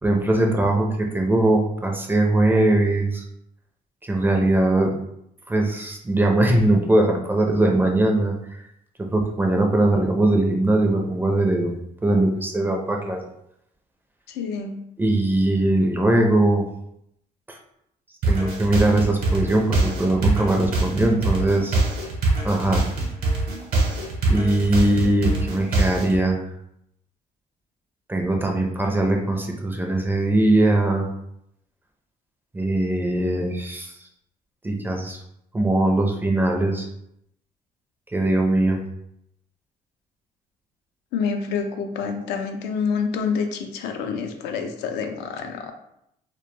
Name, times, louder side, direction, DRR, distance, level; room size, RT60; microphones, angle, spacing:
voice 1, 0.0-3.2 4.0-4.9 5.5-8.3 9.0-11.7 12.0-13.2 15.0-16.6 17.5-17.6 18.3-21.8 22.4-22.8 24.3-26.4 28.1-31.1 32.5-33.9 34.6-35.2 35.5-36.9 38.1-38.8, right 1 dB, 10° right, 2 dB, 0.4 m, -21 dB
voice 2, 14.3-14.7 41.1-45.7, left 5 dB, 85° left, 5 dB, 0.4 m, -27 dB
sound 1, 18.2-26.2, right 2 dB, 60° right, 0.8 m, -23 dB
2.2 x 2.1 x 3.1 m, 0.76 s
cardioid pair, 110°, 17 cm